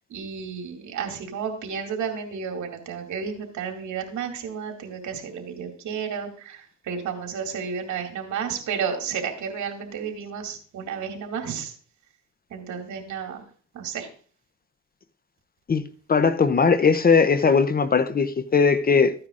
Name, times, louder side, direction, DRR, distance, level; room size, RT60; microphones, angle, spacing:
voice 1, 0.1-11.7 12.5-13.4 13.7-14.1, right 6 dB, 75° right, 2.2 m, -32 dB
voice 2, 16.1-19.1, left 5 dB, 30° left, 0.7 m, -19 dB
14.0 x 9.5 x 2.5 m
cardioid pair, 90°, 30 cm